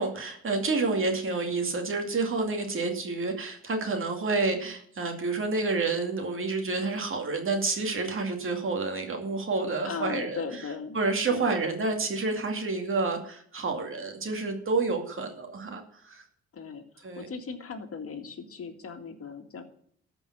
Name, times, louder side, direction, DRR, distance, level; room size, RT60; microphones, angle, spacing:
voice 1, 0.0-10.4 10.9-16.2 17.0-17.3, right 3 dB, 45° right, 3 dB, 2.4 m, -29 dB
voice 2, 9.8-11.0 11.3-11.6 16.5-19.6, left 5 dB, 50° left, 5 dB, 2.1 m, -38 dB
13.5 x 5.4 x 7.4 m, 0.62 s
cardioid pair, 90°, 30 cm